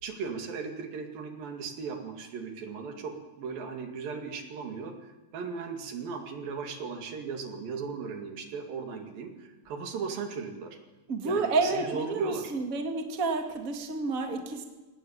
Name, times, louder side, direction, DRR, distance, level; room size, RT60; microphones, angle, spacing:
voice 1, 0.0-10.8 11.2-12.4, right 5 dB, 80° right, 4 dB, 4.1 m, -37 dB
voice 2, 11.1-14.7, right 3 dB, 25° right, 4 dB, 2.1 m, -30 dB
22.5 x 18.5 x 8.9 m, 1.2 s
omnidirectional pair, 4.0 m